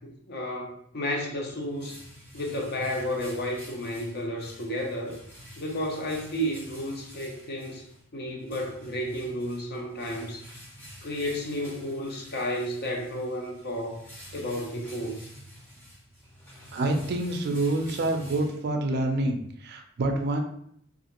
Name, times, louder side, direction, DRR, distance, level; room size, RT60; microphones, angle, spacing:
voice 1, 0.0-2.0 2.3-5.2 5.6-7.8 8.1-10.5 11.0-14.0 14.3-15.2, equal, 50° left, 0 dB, 0.6 m, -32 dB
sound 1, 1.3-19.0, equal, 10° left, 0.6 m, -48 dB
voice 2, 16.7-20.4, right 2 dB, 50° right, 4 dB, 0.4 m, -27 dB
2.4 x 2.4 x 2.9 m, 0.69 s
head